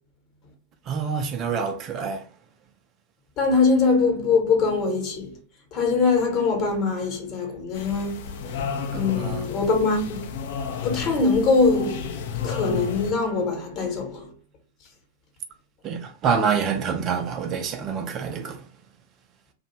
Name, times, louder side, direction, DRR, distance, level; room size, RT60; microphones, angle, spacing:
voice 1, 0.9-2.2 8.9-9.4 15.8-18.7, right 6 dB, 35° right, 0.4 m, -27 dB
voice 2, 3.4-5.4 5.7-8.6 8.9-10.3 10.8-12.1 12.4-14.3, left 4 dB, 35° left, 0.9 m, -23 dB
sound 1, 7.7-13.1, left 6 dB, 55° left, 0.4 m, -32 dB
2.4 x 2.0 x 3.0 m
figure-of-eight pair, 90°, 0 cm